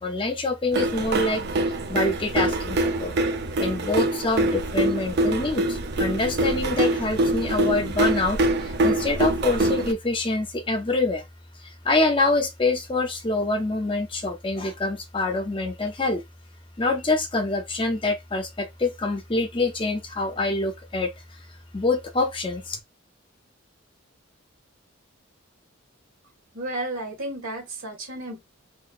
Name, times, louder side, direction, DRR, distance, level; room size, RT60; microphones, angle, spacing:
voice 1, 0.0-1.4 1.9-3.2 3.6-11.2 11.6-16.2 16.8-21.1 21.7-22.8, left 2 dB, 25° left, 0.5 m, -25 dB
sound 1, 0.7-9.9, right 1 dB, 50° right, 0.5 m, -24 dB
voice 2, 26.5-28.4, right 1 dB, 75° right, 1.7 m, -32 dB
3.8 x 2.5 x 2.4 m
head